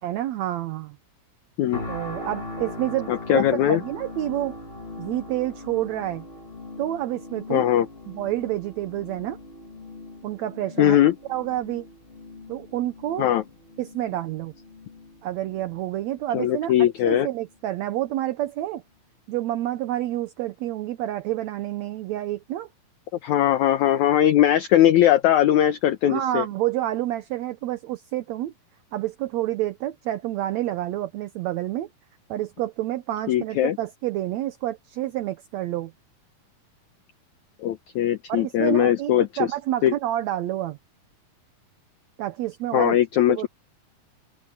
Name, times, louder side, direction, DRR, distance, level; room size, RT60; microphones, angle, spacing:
voice 1, 0.0-1.0 1.9-4.5 5.0-6.2 6.8-7.7 8.1-9.4 10.2-11.0 11.3-11.9 12.5-13.3 13.8-14.5 15.2-18.8 19.3-22.7 26.1-28.5 28.9-31.9 32.3-35.9 38.3-40.8 42.2-43.0 43.3-43.5, right 14 dB, 75° right, 1.7 m, -28 dB
sound 1, 1.7-16.7 17.2-17.4, left 2 dB, 25° left, 1.5 m, -40 dB
voice 2, 3.1-3.8 7.5-7.9 10.8-11.1 13.2-13.4 16.3-17.3 23.2-26.5 33.3-33.8 37.6-39.3 39.8-39.9 42.7-43.5, left 11 dB, 70° left, 2.1 m, -20 dB
omnidirectional pair, 4.1 m